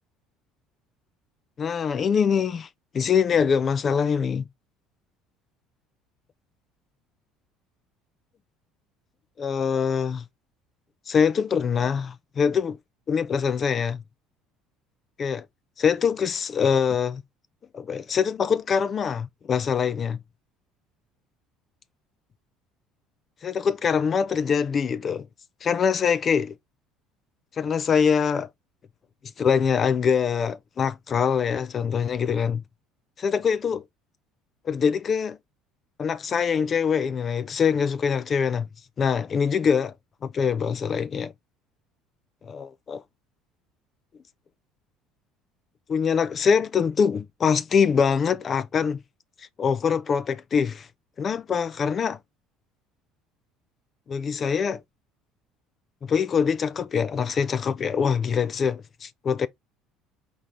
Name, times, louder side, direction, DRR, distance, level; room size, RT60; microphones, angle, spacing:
voice 1, 1.6-2.7 2.9-4.5 9.4-10.2 11.1-12.8 13.1-14.0 15.2-15.4 15.8-17.2 17.7-20.2 23.4-25.3 25.6-26.6 27.6-28.5 29.4-32.6 33.2-33.8 34.7-35.3 36.0-38.7 39.0-39.9 40.2-41.3 42.4-43.0 45.9-49.0 49.6-50.9 51.2-52.2 54.1-54.8 56.0-59.5, left 6 dB, 40° left, 0.4 m, -24 dB
4.4 x 3.1 x 3.7 m
hypercardioid pair, 65°, 0 cm